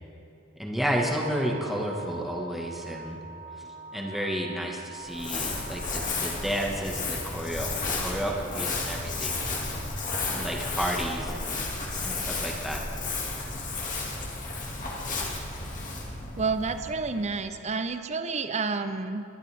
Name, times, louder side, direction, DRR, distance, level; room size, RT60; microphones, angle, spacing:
voice 1, 0.6-3.2 3.6-7.7 8.0-9.8 10.3-11.7 12.0-12.8, equal, ahead, -1 dB, 1.6 m, -32 dB
sound 1, 1.0-11.5, right 3 dB, 85° right, 3.8 m, -46 dB
Crumpling crinkling, 5.0-17.5, left 3 dB, 40° left, 2.2 m, -33 dB
voice 2, 16.4-19.2, right 4 dB, 35° right, 9 dB, 0.6 m, -29 dB
22.5 x 12.0 x 3.5 m, 2.8 s
head